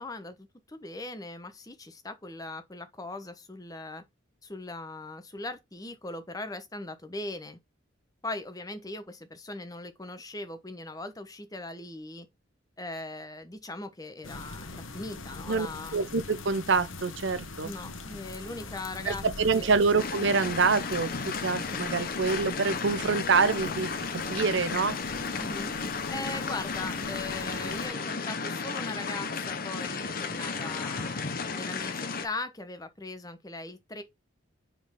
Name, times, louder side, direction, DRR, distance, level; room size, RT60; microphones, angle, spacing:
voice 1, 0.0-4.0 4.4-7.6 8.2-12.3 12.8-16.0 17.6-19.2 19.6-19.8 25.3-25.7 26.1-31.1 31.5-34.0, left 2 dB, 20° left, 0.9 m, -39 dB
sound 1, 14.2-27.9, left 3 dB, 85° left, 1.1 m, -43 dB
voice 2, 15.9-17.7 19.1-21.1 21.4-23.9 24.3-25.0, right 4 dB, 65° right, 0.7 m, -26 dB
sound 2, 20.0-32.3, left 4 dB, 45° left, 0.9 m, -34 dB
5.2 x 3.9 x 5.7 m
head